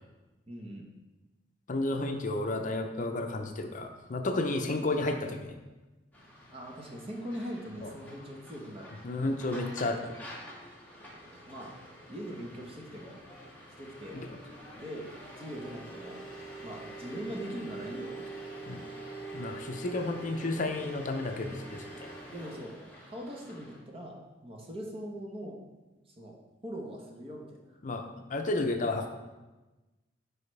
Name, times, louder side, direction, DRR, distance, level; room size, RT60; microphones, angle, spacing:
voice 1, 0.5-0.9 6.5-9.0 11.5-11.8 12.1-13.2 13.8-14.2 14.7-15.1 15.4-16.2 16.6-18.5 21.7-21.8 22.3-22.8 23.1-25.6 26.2-26.4 26.6-27.6, equal, 35° right, 0 dB, 1.1 m, -41 dB
voice 2, 1.7-5.6 7.8-7.9 9.0-10.2 14.1-14.4 18.7-18.8 19.3-22.2 27.8-29.1, left 2 dB, 45° left, 5 dB, 0.6 m, -32 dB
sound 1, 6.1-23.8, right 2 dB, 10° left, 1.6 m, -46 dB
9.9 x 4.9 x 3.3 m, 1.1 s
head